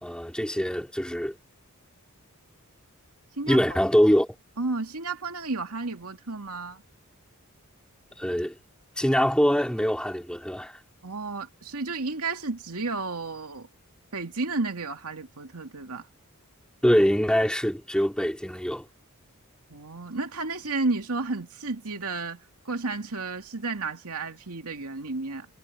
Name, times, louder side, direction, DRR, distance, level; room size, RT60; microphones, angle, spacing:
voice 1, 0.0-1.3 3.5-4.3 8.2-8.5 9.0-10.8 16.8-18.9, equal, 5° left, 4.0 m, -23 dB
voice 2, 4.6-6.8 11.0-13.7 14.1-16.1 19.7-25.5, right 3 dB, 80° right, 2.6 m, -32 dB
head